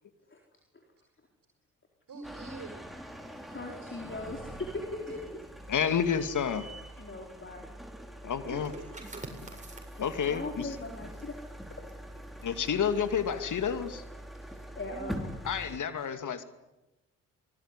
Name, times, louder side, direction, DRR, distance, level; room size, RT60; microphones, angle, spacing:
voice 1, 2.1-3.0 3.5-3.7 5.1-5.2 5.9-6.0 6.9-7.1 8.4-9.4 12.4-12.6 14.5-14.6 14.9-15.3 16.0-16.1, right 3 dB, 50° right, 3 dB, 5.7 m, -46 dB
sound 1, 2.2-15.8, equal, ahead, 4.7 m, -44 dB
voice 2, 3.5-5.4 7.0-7.6 9.8-11.8 14.5-15.3, left 2 dB, 30° left, 2 dB, 4.3 m, -40 dB
voice 3, 5.7-6.7 8.2-8.7 10.0-10.7 12.4-14.0 15.5-16.4, left 7 dB, 55° left, 10 dB, 2.5 m, -30 dB
sound 2, 8.6-14.0 14.4-14.6, right 2 dB, 20° right, 7.9 m, -50 dB
26.5 x 19.5 x 9.9 m, 1.0 s
hypercardioid pair, 40°, 37 cm